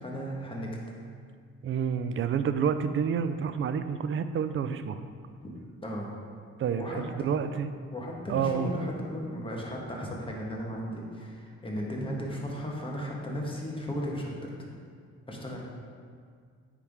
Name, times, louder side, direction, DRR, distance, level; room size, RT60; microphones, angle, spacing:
voice 1, 0.0-0.7 5.4-5.5 5.8-6.1 6.7-7.3 7.9-14.7 15.3-15.6, equal, 15° left, -2 dB, 1.3 m, -35 dB
voice 2, 1.6-5.0 6.6-7.7 8.3-8.7, right 7 dB, 45° right, 10 dB, 0.4 m, -29 dB
9.3 x 3.5 x 3.5 m, 2.1 s
cardioid pair, 90°, 30 cm